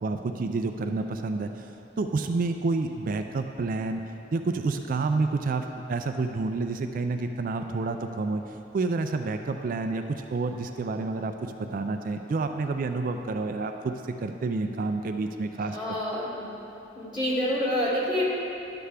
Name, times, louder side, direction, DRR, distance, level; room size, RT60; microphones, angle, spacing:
voice 1, 0.0-1.7 2.0-4.0 4.3-8.4 8.7-15.8, right 3 dB, 50° right, 6 dB, 0.3 m, -29 dB
voice 2, 15.6-16.5 16.9-18.2, equal, 25° left, -8 dB, 2.1 m, -28 dB
11.5 x 6.8 x 3.4 m, 2.9 s
head